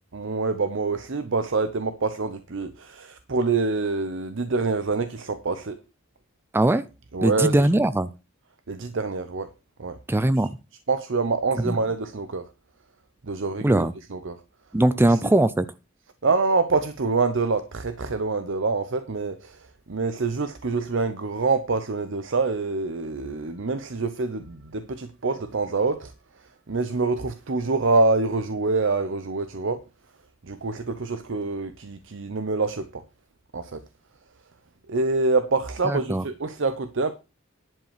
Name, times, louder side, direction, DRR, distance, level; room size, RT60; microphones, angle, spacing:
voice 1, 0.1-5.8 7.1-7.7 8.7-9.5 9.8-10.0 10.4-10.5 10.9-12.5 13.2-14.4 15.0-15.3 16.2-29.8 30.4-33.0 33.5-33.8 34.9-37.1, right 3 dB, 65° right, 0.7 m, -26 dB
voice 2, 7.2-8.1 10.1-10.5 11.6-11.8 13.6-13.9 14.7-15.7 35.9-36.2, right 1 dB, 10° right, 0.4 m, -20 dB
11.0 x 5.2 x 6.6 m
head